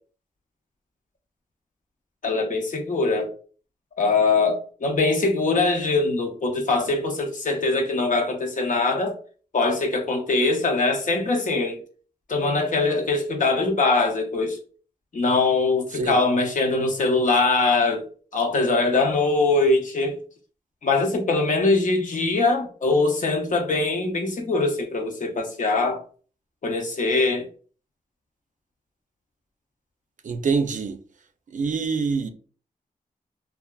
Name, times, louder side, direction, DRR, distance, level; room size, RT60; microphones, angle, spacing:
voice 1, 2.2-3.3 4.0-9.2 9.5-11.8 12.3-14.6 15.1-18.1 18.3-20.2 20.8-26.0 26.6-27.5, left 3 dB, 60° left, 0.7 m, -22 dB
voice 2, 30.2-31.0 31.5-32.3, right 5 dB, 60° right, 0.4 m, -25 dB
2.6 x 2.3 x 2.2 m
cardioid pair, 65°, 15 cm